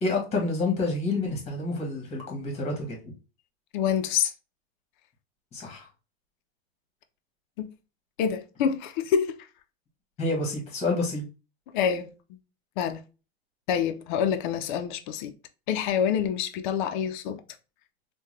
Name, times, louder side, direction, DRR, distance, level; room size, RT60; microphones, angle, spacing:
voice 1, 0.0-3.0 5.5-5.9 10.2-11.3, left 3 dB, 20° left, 1.2 m, -28 dB
voice 2, 3.7-4.3 7.6-7.7 8.2-9.4 11.7-12.4 12.8-13.0 13.7-15.3 15.7-17.4, left 8 dB, 50° left, 0.5 m, -27 dB
3.7 x 2.2 x 3.1 m
supercardioid pair, 150°, 32 cm